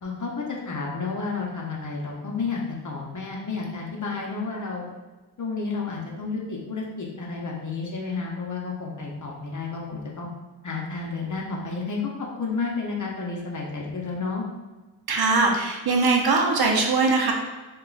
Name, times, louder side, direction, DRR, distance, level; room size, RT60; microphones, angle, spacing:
voice 1, 0.0-4.8 5.4-10.3 10.6-14.4, left 4 dB, 40° left, -2 dB, 0.7 m, -31 dB
voice 2, 15.1-17.3, right 3 dB, 55° right, 1 dB, 0.6 m, -21 dB
3.5 x 2.3 x 2.4 m, 1.2 s
cardioid pair, 65°, 45 cm